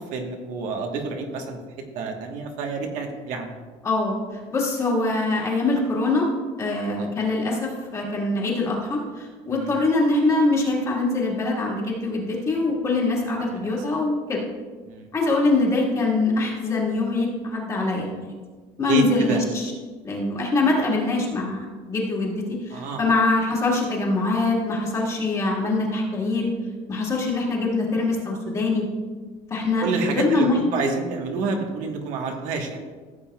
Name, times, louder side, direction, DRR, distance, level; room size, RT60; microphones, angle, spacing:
voice 1, 0.1-1.6 1.9-3.5 6.9-7.1 9.5-9.7 13.5-13.7 14.9-15.1 18.9-19.4 22.7-23.0 29.8-32.8, right 4 dB, 70° right, 2 dB, 1.3 m, -28 dB
voice 2, 3.8-4.2 4.5-6.3 6.6-14.4 15.1-18.3 18.8-19.7 20.0-26.5 26.9-28.9 29.5-30.6, left 2 dB, 25° left, -2 dB, 1.7 m, -23 dB
15.0 x 7.5 x 2.3 m, 1.4 s
cardioid pair, 170°, 13 cm